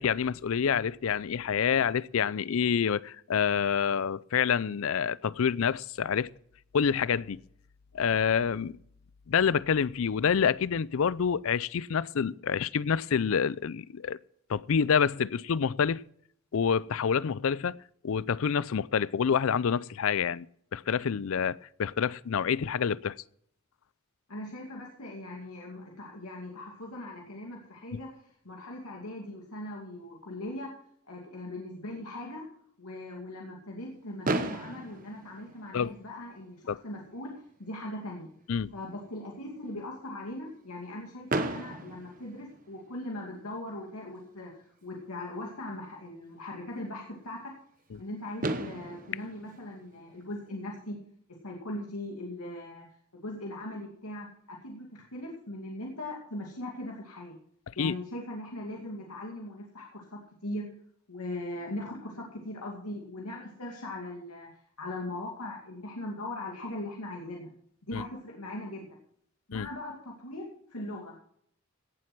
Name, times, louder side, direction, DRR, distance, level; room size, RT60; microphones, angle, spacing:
voice 1, 0.0-6.3 6.7-7.4 7.9-8.8 9.3-14.2 14.5-16.0 16.5-17.8 18.0-20.5 20.7-23.2 27.9-28.0 35.7-35.9 36.7-36.8 38.5-38.7 47.9-48.0 57.7-57.9 67.9-68.0 69.5-69.7, left 7 dB, 70° left, 0.4 m, -27 dB
voice 2, 24.3-30.7 31.1-32.5 32.8-38.3 38.7-47.5 48.0-51.0 51.4-52.9 53.2-57.4 57.8-60.7 61.1-64.5 64.8-67.5 67.9-69.0 69.5-71.2, left 1 dB, 90° left, 2.4 m, -40 dB
Fireworks, 34.2-36.3 37.1-37.2 37.4-37.6 37.9-38.0 41.3-43.1 44.8-44.9 47.9-48.0 48.4-50.7, right 2 dB, 35° right, 1.0 m, -35 dB
17.0 x 7.7 x 5.9 m
head